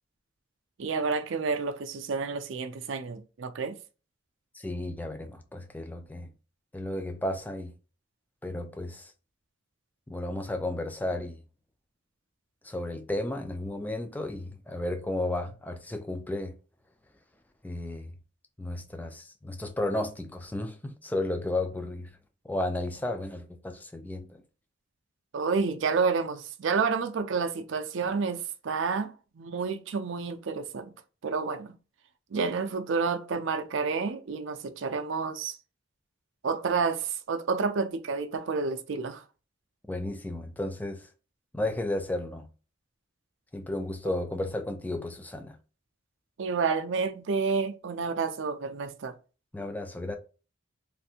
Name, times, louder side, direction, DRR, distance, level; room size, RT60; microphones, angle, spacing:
voice 1, 0.8-3.8 25.3-30.9 31.2-31.8 32.3-35.6 36.4-39.2 46.4-49.1, right 5 dB, 60° right, 0.4 m, -29 dB
voice 2, 4.5-6.3 6.7-7.7 8.4-9.1 10.1-11.4 12.6-16.5 17.6-18.1 18.6-22.1 22.4-24.4 39.9-41.1 41.5-42.5 43.5-45.6 49.5-50.2, left 1 dB, 10° left, 0.3 m, -33 dB
3.2 x 2.5 x 2.7 m
head